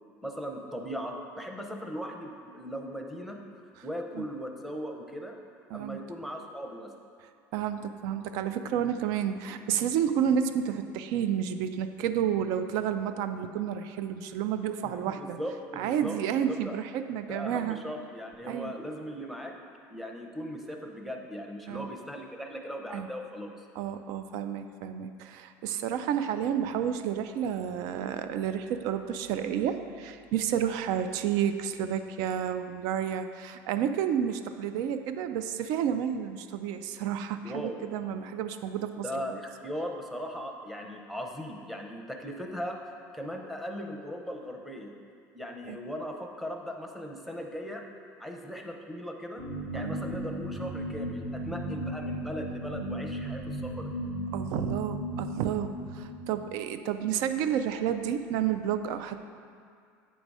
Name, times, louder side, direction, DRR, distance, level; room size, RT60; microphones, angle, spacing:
voice 1, 0.2-3.4 3.8-5.4 5.7-6.9 14.8-16.8 17.3-19.6 19.9-23.7 37.4-37.8 39.0-42.8 43.1-44.9 45.3-47.8 48.2-49.4 49.7-53.9, equal, ahead, 1 dB, 0.7 m, -38 dB
voice 2, 7.5-15.4 15.8-17.8 18.4-18.7 21.7-21.9 22.9-23.1 23.8-39.4 45.7-45.8 49.7-50.0 54.3-59.2, right 9 dB, 70° right, 9 dB, 0.4 m, -30 dB
sound 1, 49.4-56.5, right 1 dB, 45° right, 0.9 m, -36 dB
9.1 x 3.9 x 4.8 m, 2.3 s
cardioid pair, 130°, 7 cm